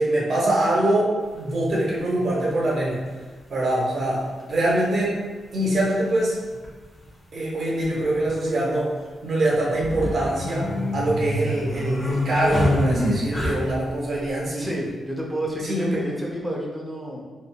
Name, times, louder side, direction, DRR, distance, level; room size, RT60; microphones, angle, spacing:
voice 1, 0.0-3.0 3.5-5.2 5.5-6.4 7.3-9.0 9.2-14.7 15.7-16.0, right 1 dB, 60° right, -4 dB, 0.9 m, -24 dB
sound 1, 1.3-1.4 2.9-3.0 4.4-4.5 4.7-4.8 6.6-6.8 7.0-7.1 7.8-8.3 9.7-13.9, left 1 dB, 30° left, 0.8 m, -25 dB
voice 2, 14.6-17.2, right 1 dB, 5° right, -3 dB, 0.6 m, -30 dB
3.3 x 2.6 x 2.3 m, 1.3 s
cardioid pair, 95°, 0 cm